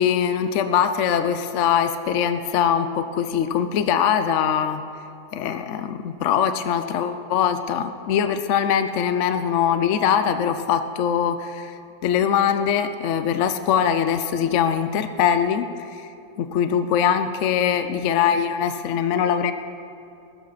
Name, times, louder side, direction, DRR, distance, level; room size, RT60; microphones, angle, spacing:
voice 1, 0.0-4.8 5.3-11.7 12.0-16.1 16.4-19.5, left 8 dB, 60° left, 10 dB, 0.9 m, -22 dB
21.0 x 13.0 x 4.1 m, 2.6 s
omnidirectional pair, 1.7 m